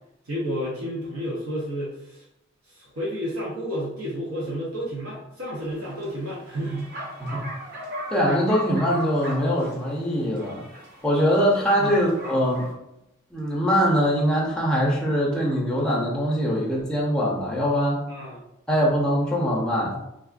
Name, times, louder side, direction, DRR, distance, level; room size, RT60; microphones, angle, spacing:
voice 1, 0.2-2.2 2.7-6.9 11.8-12.0 18.1-18.4, equal, 85° right, -5 dB, 0.8 m, -31 dB
Bark, 5.5-12.7, right 1 dB, 50° right, 0.6 m, -38 dB
voice 2, 8.1-10.6 11.0-12.7 13.3-18.0 18.7-20.0, equal, 5° left, -4 dB, 0.5 m, -22 dB
3.4 x 2.3 x 2.4 m, 0.86 s
head